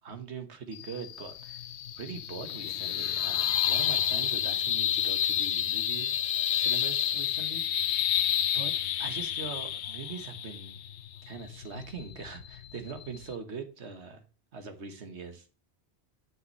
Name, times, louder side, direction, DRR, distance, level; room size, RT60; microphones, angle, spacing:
voice 1, 0.0-1.6 2.0-6.1 6.5-7.6 8.0-8.7 9.0-10.8 11.2-14.2 14.5-15.5, right 5 dB, 85° right, 1.6 m, -42 dB
sound 1, 0.7-13.4, left 10 dB, 85° left, 0.9 m, -30 dB
8.0 x 6.4 x 3.1 m
omnidirectional pair, 1.1 m